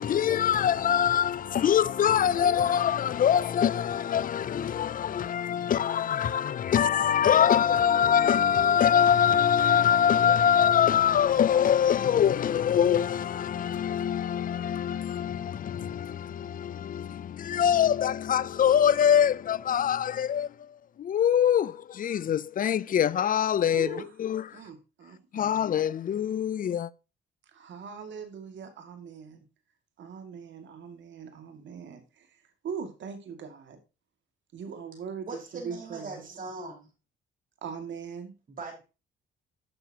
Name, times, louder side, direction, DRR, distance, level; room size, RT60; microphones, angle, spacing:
voice 1, 0.0-23.9 24.2-24.6 25.3-26.9, left 9 dB, 45° left, 0.5 m, -24 dB
voice 2, 23.7-24.1 24.5-25.6 27.5-29.4 30.0-33.8 34.5-36.3 37.6-38.3, right 6 dB, 70° right, 2.3 m, -41 dB
voice 3, 35.3-36.9 38.5-38.8, right 3 dB, 45° right, 4.9 m, -40 dB
11.5 x 7.0 x 2.9 m
cardioid pair, 90°, 20 cm